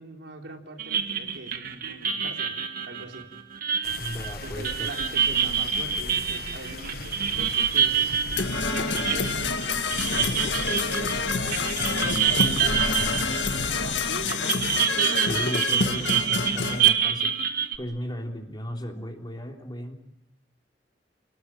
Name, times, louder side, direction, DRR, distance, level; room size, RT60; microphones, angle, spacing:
voice 1, 0.0-2.6 2.9-3.3 4.4-7.9 8.7-9.7 10.0-15.2, right 2 dB, 85° right, 2 dB, 4.1 m, -42 dB
sound 1, 0.8-13.9 14.3-17.8, right 8 dB, 55° right, 1.9 m, -27 dB
sound 2, 3.8-14.3, left 2 dB, 55° left, 1.4 m, -37 dB
voice 2, 3.9-4.9 15.2-19.9, equal, 25° left, 2 dB, 3.3 m, -36 dB
Percussion / Brass instrument, 8.4-16.9, left 4 dB, 90° left, 1.9 m, -28 dB
29.5 x 19.5 x 8.8 m, 0.89 s
head